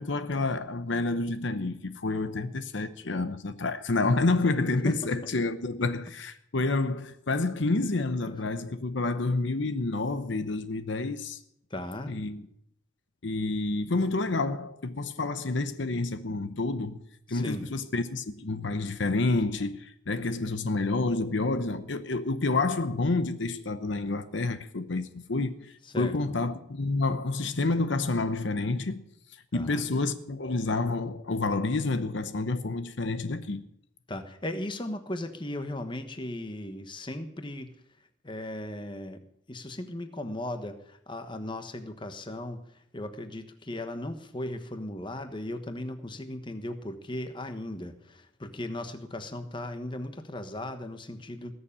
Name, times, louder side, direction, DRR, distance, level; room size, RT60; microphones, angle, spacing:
voice 1, 0.0-11.4 12.1-12.5 13.2-17.0 17.3-29.0 29.5-33.6, left 3 dB, 65° left, 0.9 m, -29 dB
voice 2, 11.7-12.1 17.3-17.6 25.9-26.1 29.5-29.9 34.1-37.7 38.2-39.2 39.5-42.6 42.9-51.5, left 1 dB, 25° left, 1.2 m, -37 dB
19.0 x 7.1 x 8.7 m
head